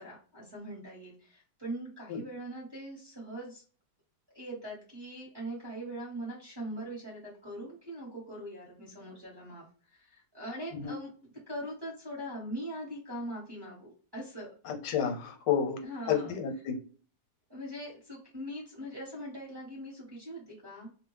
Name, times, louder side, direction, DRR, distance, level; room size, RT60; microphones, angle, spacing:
voice 1, 0.0-3.6 4.3-11.1 11.5-14.5 14.8-15.1 15.8-16.3 17.5-20.9, right 1 dB, 15° right, -6 dB, 1.1 m, -41 dB
voice 2, 14.6-15.8 16.1-16.8, left 8 dB, 85° left, 4 dB, 1.3 m, -30 dB
2.7 x 2.3 x 3.2 m, 0.40 s
omnidirectional pair, 1.8 m